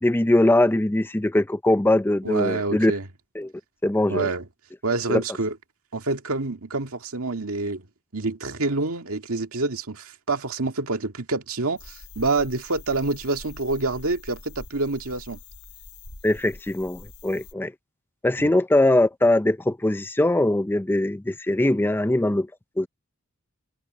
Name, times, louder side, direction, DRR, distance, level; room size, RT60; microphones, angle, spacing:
voice 1, 0.0-2.9 3.4-3.5 3.8-4.3 5.1-5.2 16.2-17.7 18.2-22.5 22.8-22.9, left 1 dB, 10° left, 0.4 m, -21 dB
voice 2, 2.2-3.0 4.1-4.5 4.8-5.6 5.9-7.9 8.1-15.4 18.4-18.5, right 3 dB, 80° right, 2.0 m, -27 dB
sound 1, 11.8-17.5, left 3 dB, 85° left, 3.2 m, -44 dB
head